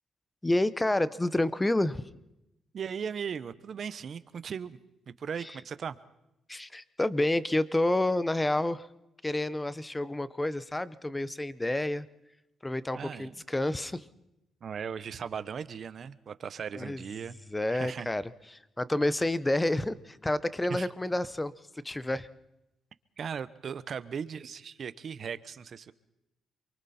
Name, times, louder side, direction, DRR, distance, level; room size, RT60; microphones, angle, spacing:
voice 1, 0.4-2.0 5.4-5.5 6.5-8.9 9.2-12.1 12.6-14.1 16.7-17.0 17.5-21.5 21.8-22.3, left 1 dB, 10° left, 16 dB, 0.9 m, -29 dB
voice 2, 2.7-4.8 5.1-6.0 12.9-13.3 14.6-17.4 17.7-18.1 20.7-20.9 23.2-25.9, right 7 dB, 50° right, 14 dB, 1.0 m, -38 dB
28.5 x 23.5 x 4.4 m, 0.88 s
cardioid pair, 100°, 0 cm